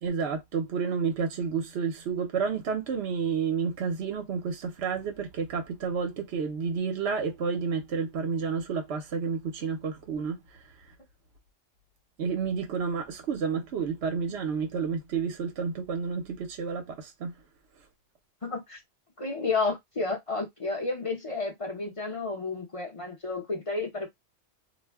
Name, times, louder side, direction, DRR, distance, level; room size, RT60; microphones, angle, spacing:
voice 1, 0.0-10.9 12.2-17.3, right 6 dB, 65° right, 0.9 m, -30 dB
voice 2, 18.4-18.8 19.2-24.1, left 3 dB, 30° left, 0.7 m, -31 dB
2.4 x 2.1 x 3.4 m
omnidirectional pair, 1.3 m